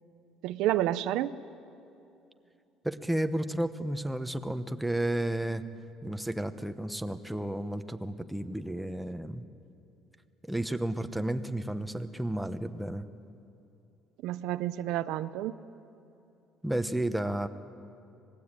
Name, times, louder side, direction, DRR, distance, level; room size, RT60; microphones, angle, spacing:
voice 1, 0.4-1.3 14.2-15.5, right 13 dB, 75° right, 13 dB, 0.7 m, -29 dB
voice 2, 2.8-5.6 6.0-9.4 10.4-13.1 16.6-17.5, right 1 dB, 5° right, 8 dB, 1.0 m, -32 dB
25.5 x 20.0 x 9.0 m, 2.7 s
cardioid pair, 130°, 0 cm